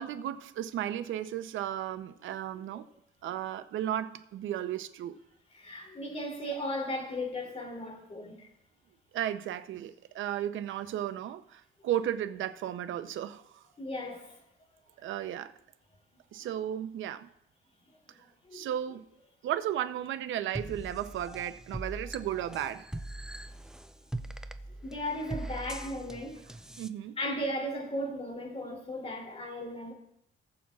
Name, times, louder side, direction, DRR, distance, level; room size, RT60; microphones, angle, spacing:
voice 1, 0.0-2.9 3.2-5.2 9.1-13.4 15.0-15.5 16.3-17.3 18.5-19.1 19.4-22.9 26.8-27.2, right 11 dB, 75° right, 0.7 m, -34 dB
voice 2, 5.5-8.5 13.8-14.3 18.5-18.7 24.8-26.4 27.2-29.9, left 1 dB, 30° left, 3.1 m, -36 dB
sound 1, 20.5-26.9, right 1 dB, 5° right, 0.5 m, -41 dB
19.0 x 7.5 x 2.4 m
cardioid pair, 90°, 20 cm